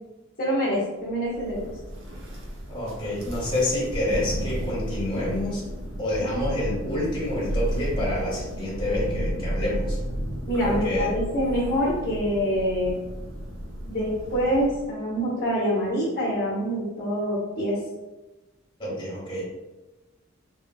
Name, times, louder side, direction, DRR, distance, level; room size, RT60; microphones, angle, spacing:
voice 1, 0.4-1.7 10.5-13.0 13.9-17.8, equal, 50° left, -7 dB, 0.8 m, -25 dB
Thunder, 1.3-15.0, equal, 75° right, 0.7 m, -32 dB
voice 2, 2.7-5.6 6.0-10.0 10.6-11.1 18.8-19.4, left 1 dB, 25° left, -7 dB, 1.0 m, -28 dB
3.5 x 2.3 x 2.2 m, 1.1 s
head